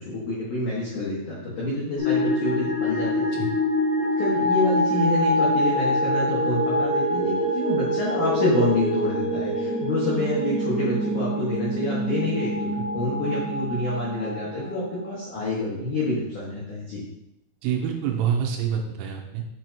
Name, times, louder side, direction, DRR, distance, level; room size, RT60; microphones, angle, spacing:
voice 1, 0.0-3.4 4.2-17.0, left 2 dB, 75° left, -8 dB, 1.8 m, -27 dB
sound 1, 2.0-15.1, equal, 50° left, 2.1 m, -25 dB
voice 2, 17.6-19.5, right 8 dB, 80° right, 3 dB, 3.1 m, -26 dB
7.2 x 5.9 x 2.7 m, 0.85 s
omnidirectional pair, 5.9 m